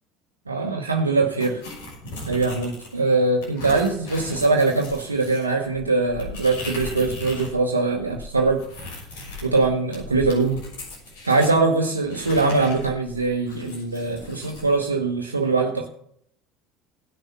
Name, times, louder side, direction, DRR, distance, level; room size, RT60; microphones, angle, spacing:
voice 1, 0.5-1.6 2.3-8.6 9.4-10.6 11.2-15.9, right 3 dB, 90° right, 1 dB, 0.9 m, -22 dB
sound 1, 1.4-3.0 3.4-7.6 7.8-11.6 12.1-14.7, left 2 dB, 70° left, 6.2 m, -38 dB
17.0 x 6.3 x 5.5 m, 0.69 s
figure-of-eight pair, 65°, 0 cm